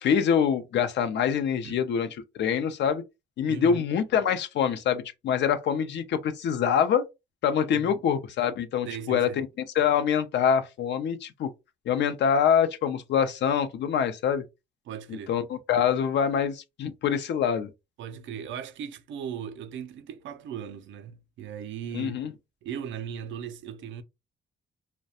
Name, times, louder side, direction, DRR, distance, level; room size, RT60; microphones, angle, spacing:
voice 1, 0.0-2.1 2.3-3.0 3.4-7.1 7.4-9.5 9.7-11.5 11.9-14.4 15.1-17.7 21.9-22.3, left 8 dB, 65° left, 0.5 m, -25 dB
voice 2, 3.5-3.8 7.7-8.0 8.9-9.4 14.9-15.4 18.0-22.2 22.6-24.0, right 8 dB, 70° right, 0.5 m, -38 dB
2.3 x 2.1 x 2.7 m
cardioid pair, 90°, 20 cm